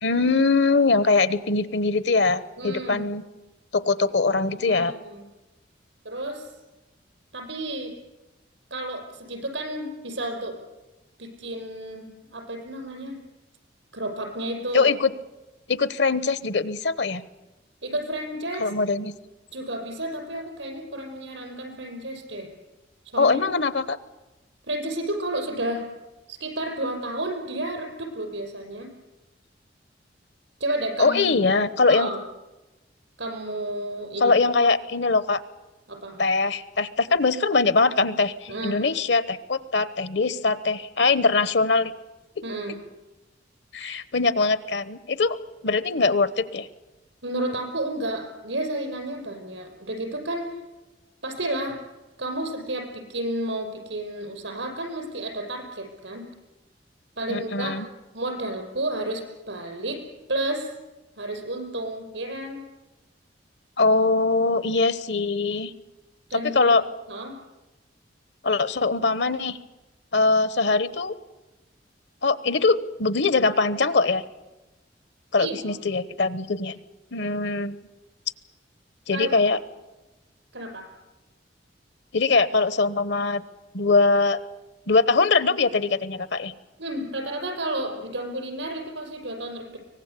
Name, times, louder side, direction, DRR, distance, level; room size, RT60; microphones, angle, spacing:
voice 1, 0.0-3.2 3.7-4.9 14.7-15.1 15.7-17.2 18.6-19.1 23.2-24.0 31.0-32.1 34.2-35.4 36.2-41.9 43.7-45.4 45.6-46.7 57.3-57.9 63.8-65.7 66.3-66.8 68.4-69.6 70.1-71.1 72.2-74.2 75.3-76.8 77.1-77.8 79.1-79.6 82.1-83.4 83.7-84.4 84.9-86.5, left 3 dB, 70° left, 15 dB, 1.0 m, -22 dB
voice 2, 2.6-3.0 4.5-5.2 6.0-6.5 7.3-7.9 8.7-10.6 11.2-13.2 13.9-14.9 17.8-18.7 19.5-22.5 23.1-23.4 24.7-25.9 26.3-28.9 30.6-32.2 33.2-34.3 35.9-36.2 38.5-38.9 42.4-42.8 47.2-50.6 51.2-51.8 52.2-56.3 57.2-57.7 58.1-60.0 60.3-60.7 61.2-62.6 66.3-66.8 67.1-67.4 75.4-75.7 79.1-79.4 80.5-80.9 86.8-89.8, right 1 dB, 85° right, 4 dB, 5.8 m, -31 dB
24.0 x 19.0 x 8.4 m, 1.1 s
head